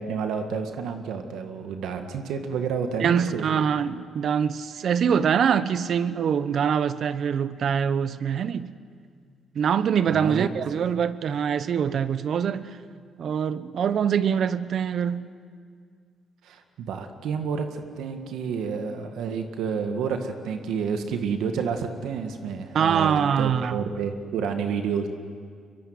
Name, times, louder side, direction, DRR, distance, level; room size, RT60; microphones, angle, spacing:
voice 1, 0.0-3.5 10.1-10.5 16.4-25.1, right 6 dB, 80° right, 1.8 m, -30 dB
voice 2, 3.0-8.7 9.5-12.8 13.2-15.3 22.7-23.9, right 7 dB, 60° right, 1.0 m, -24 dB
23.5 x 23.5 x 9.5 m
cardioid pair, 90°, 0 cm